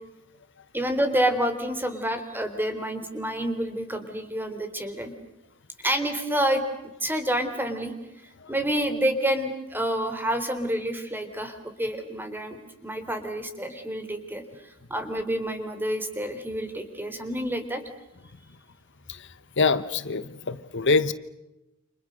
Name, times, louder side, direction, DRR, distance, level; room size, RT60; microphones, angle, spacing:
voice 1, 0.7-5.1 5.8-6.6 7.0-7.9 8.5-17.8, right 1 dB, 10° right, 8 dB, 3.6 m, -28 dB
voice 2, 19.6-21.1, left 4 dB, 60° left, 14 dB, 1.2 m, -25 dB
29.5 x 28.5 x 6.5 m, 0.93 s
head